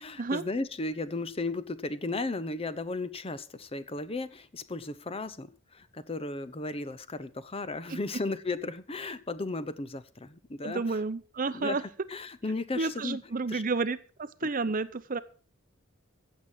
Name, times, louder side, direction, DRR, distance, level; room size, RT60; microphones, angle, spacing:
voice 1, 0.0-10.8 11.5-13.2 13.5-13.6, left 3 dB, 30° left, 14 dB, 0.8 m, -35 dB
voice 2, 10.6-11.8 12.8-15.2, right 3 dB, 45° right, 14 dB, 0.7 m, -31 dB
15.5 x 7.4 x 5.9 m, 0.39 s
head